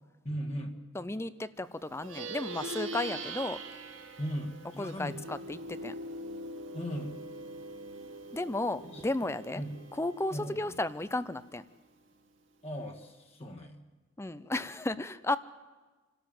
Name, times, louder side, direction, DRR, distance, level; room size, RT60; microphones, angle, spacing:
voice 1, 0.2-0.7 4.2-5.2 6.7-7.2 8.9-9.0 9.5-9.7 10.3-10.7 12.6-13.8, equal, 30° left, 1 dB, 1.9 m, -37 dB
voice 2, 0.9-3.6 4.8-6.0 8.3-9.6 9.9-11.6 14.2-15.4, left 2 dB, 15° left, 14 dB, 0.6 m, -34 dB
Plucked string instrument, 1.9-11.6, right 2 dB, 75° right, 2.2 m, -43 dB
27.0 x 13.0 x 7.6 m, 1.3 s
head